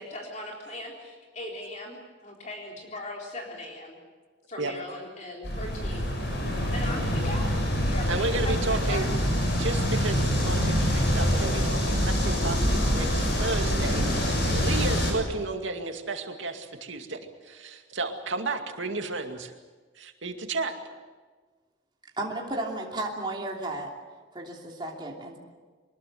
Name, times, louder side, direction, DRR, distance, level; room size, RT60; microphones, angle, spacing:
voice 1, 0.0-4.0 4.5-6.1 6.7-9.1, left 1 dB, 35° left, -1 dB, 3.9 m, -39 dB
sound 1, 5.4-15.1, equal, 55° left, 6.6 m, -25 dB
voice 2, 8.1-9.1 9.6-19.5 20.0-20.7, right 3 dB, 75° right, 5 dB, 2.3 m, -32 dB
voice 3, 22.2-23.9 24.3-25.4, right 2 dB, 25° right, -1 dB, 3.0 m, -33 dB
24.0 x 20.5 x 7.9 m, 1.4 s
head